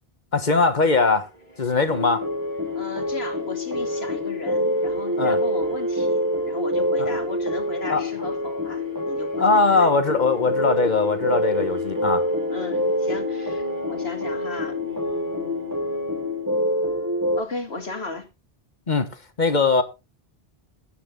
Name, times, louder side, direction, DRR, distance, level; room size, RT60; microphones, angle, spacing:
voice 1, 0.3-1.3 1.6-2.2 5.2-5.4 7.0-7.1 7.9-8.0 9.4-12.2 18.9-19.1 19.4-19.8, left 3 dB, 45° left, 1.6 m, -20 dB
sound 1, 1.1-17.4, equal, 40° right, 4.8 m, -44 dB
sound 2, 1.9-17.4, left 1 dB, 15° right, 2.0 m, -26 dB
voice 2, 2.8-9.9 12.5-15.7 17.3-18.3, left 2 dB, 85° left, 2.6 m, -35 dB
14.0 x 9.3 x 3.9 m
omnidirectional pair, 1.0 m